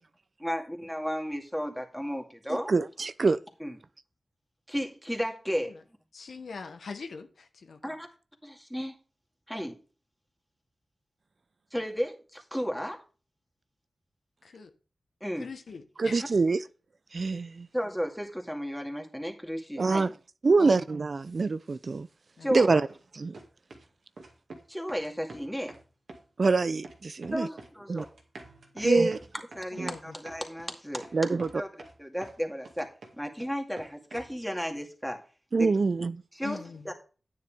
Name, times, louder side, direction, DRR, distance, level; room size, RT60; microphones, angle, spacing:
voice 1, 0.4-2.7 3.6-3.8 4.7-5.8 7.8-8.1 8.4-9.0 9.5-9.8 11.7-13.0 15.2-15.5 17.7-20.0 22.4-22.8 24.7-25.7 27.3-28.1 28.7-31.1 31.5-31.7 32.0-32.9 33.1-35.2 35.5-35.7 36.3-36.6 36.8-36.9, equal, ahead, 2.3 m, -33 dB
voice 2, 2.7-3.4 16.0-16.6 17.1-17.7 19.8-20.1 20.4-22.1 22.5-22.8 23.2-23.3 26.4-27.5 27.9-28.0 28.8-29.2 29.8-29.9 31.1-31.5 35.5-36.2, right 4 dB, 60° right, 0.4 m, -25 dB
voice 3, 6.1-7.8 14.4-14.7 15.4-16.2 20.6-20.8 22.4-22.7 29.7-30.2 36.4-36.9, left 4 dB, 90° left, 1.2 m, -42 dB
sound 1, 22.9-23.0 23.3-23.9 24.2-24.6 24.9-25.8 26.1-26.6 26.8-27.7 28.0-30.7 31.0-31.1 31.4-32.4 32.6-33.5 33.8-34.3, right 2 dB, 85° right, 2.1 m, -47 dB
9.6 x 9.5 x 3.6 m
wide cardioid pair, 65°, 0 cm